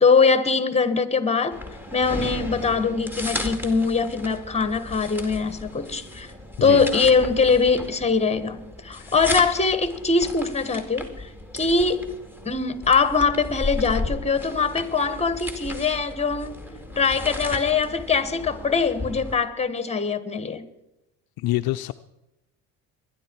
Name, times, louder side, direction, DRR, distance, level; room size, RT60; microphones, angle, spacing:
voice 1, 0.0-1.6 1.9-6.3 6.6-12.0 12.4-16.6 17.0-20.6, left 4 dB, 15° left, 1.5 m, -22 dB
sound 1, 1.5-19.4, left 2 dB, 5° right, 2.2 m, -35 dB
voice 2, 21.4-21.9, left 17 dB, 65° left, 0.6 m, -26 dB
22.5 x 11.0 x 4.7 m
supercardioid pair, 80°, 40 cm